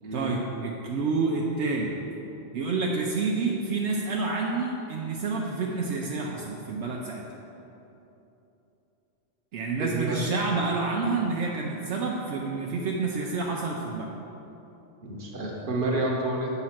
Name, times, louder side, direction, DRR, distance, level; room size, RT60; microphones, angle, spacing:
voice 1, 0.1-1.9 2.5-7.2 9.5-14.1, right 3 dB, 75° right, -1 dB, 0.9 m, -28 dB
voice 2, 9.8-10.2 15.0-16.5, right 2 dB, 50° right, -2 dB, 1.1 m, -29 dB
7.4 x 3.9 x 5.8 m, 3.0 s
omnidirectional pair, 1.2 m